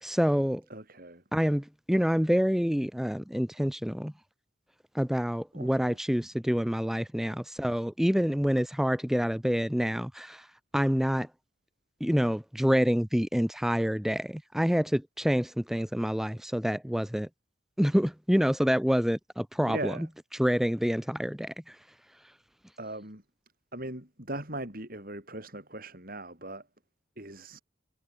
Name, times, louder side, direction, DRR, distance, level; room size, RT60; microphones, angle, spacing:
voice 1, 0.0-0.6 1.3-4.1 4.9-10.5 10.7-11.3 12.0-17.3 17.8-19.9 20.4-21.8, equal, ahead, 0.5 m, -27 dB
voice 2, 0.7-1.2 5.5-6.0 19.7-20.1 22.8-23.2 23.7-26.7 27.2-27.6, right 1 dB, 45° right, 7.7 m, -39 dB
head